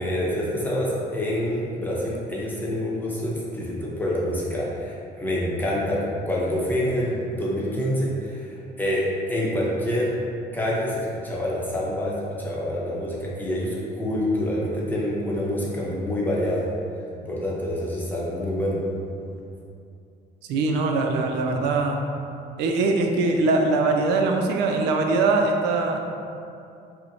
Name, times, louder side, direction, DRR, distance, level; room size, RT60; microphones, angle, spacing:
voice 1, 0.0-10.1 10.5-16.6 17.2-18.8, left 1 dB, 10° left, -6 dB, 0.8 m, -27 dB
voice 2, 20.5-21.9 22.6-26.0, right 3 dB, 90° right, 2 dB, 0.4 m, -22 dB
5.5 x 2.1 x 2.7 m, 2.6 s
cardioid pair, 110°, 17 cm